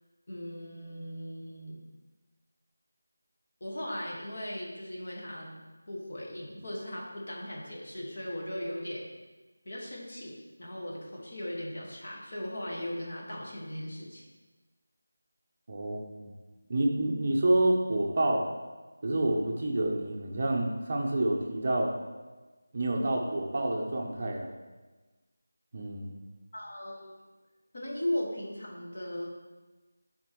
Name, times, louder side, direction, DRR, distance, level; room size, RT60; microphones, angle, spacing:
voice 1, 0.3-1.8 3.6-5.5 5.9-9.0 9.6-14.2 26.5-27.1 27.7-29.3, left 1 dB, 45° left, -3 dB, 1.6 m, -38 dB
voice 2, 15.7-16.3 16.7-18.4 19.0-21.9 22.7-24.5 25.7-26.1, right 1 dB, 30° right, 0 dB, 0.6 m, -28 dB
9.3 x 4.3 x 3.0 m, 1.2 s
figure-of-eight pair, 175°, 0 cm